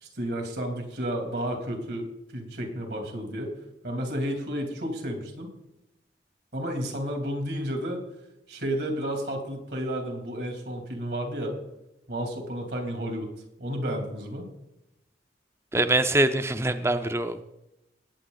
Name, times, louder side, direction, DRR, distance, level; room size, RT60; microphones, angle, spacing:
voice 1, 0.0-2.1 2.3-3.5 3.8-5.5 6.5-8.0 8.5-11.5 12.1-13.3 13.6-14.5, equal, 65° right, 2 dB, 3.0 m, -31 dB
voice 2, 15.7-17.4, right 2 dB, 15° right, 10 dB, 0.5 m, -24 dB
19.5 x 8.2 x 4.0 m, 0.89 s
head